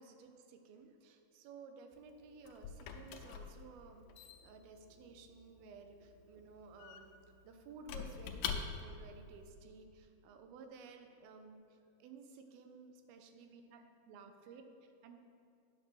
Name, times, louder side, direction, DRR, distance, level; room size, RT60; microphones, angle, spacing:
voice 1, 0.0-7.1 7.4-15.2, right 4 dB, 80° right, 6 dB, 2.7 m, -55 dB
Squeak / Wood, 1.9-9.1, left 7 dB, 85° left, 2.5 m, -46 dB
8.9 x 6.7 x 6.2 m, 2.5 s
omnidirectional pair, 4.3 m